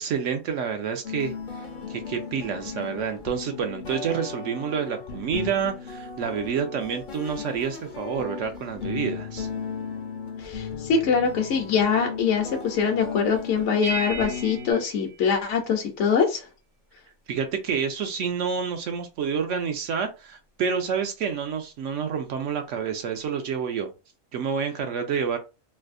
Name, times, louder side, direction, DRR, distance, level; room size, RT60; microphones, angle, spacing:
voice 1, 0.0-1.3 1.9-9.5 17.3-23.9 24.3-25.4, right 7 dB, 70° right, 0.9 m, -28 dB
sound 1, 1.0-14.7, left 6 dB, 50° left, 0.6 m, -36 dB
voice 2, 10.4-16.4, left 6 dB, 65° left, 1.0 m, -23 dB
sound 2, 13.8-16.0, right 2 dB, 85° right, 1.5 m, -35 dB
3.3 x 2.6 x 2.5 m
omnidirectional pair, 1.4 m